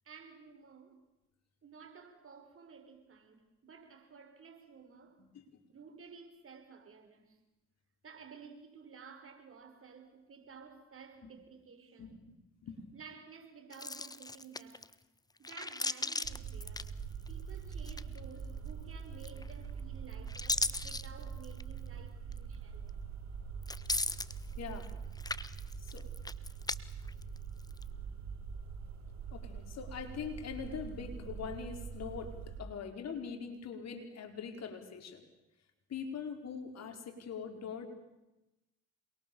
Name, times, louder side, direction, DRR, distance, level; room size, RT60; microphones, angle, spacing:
voice 1, 0.1-1.0 1.6-5.2 5.7-7.4 8.0-12.2 12.9-14.9 15.4-16.9 17.3-22.9, right 5 dB, 45° right, 5.3 m, -54 dB
voice 2, 5.2-5.6 11.2-11.3 12.0-12.1 12.6-12.8 24.6-24.9 25.8-26.0 29.3-35.2 35.9-37.9, left 6 dB, 60° left, 5.0 m, -42 dB
sound 1, 13.7-14.9 15.4-17.4 17.7-18.4 19.2-19.7 20.1-21.7 22.3-22.4 23.6-24.9 25.2-26.8 27.1-27.8, left 2 dB, 10° left, 1.2 m, -37 dB
sound 2, 16.2-32.6, right 6 dB, 60° right, 4.4 m, -44 dB
27.5 x 22.5 x 7.2 m
supercardioid pair, 65°, 30 cm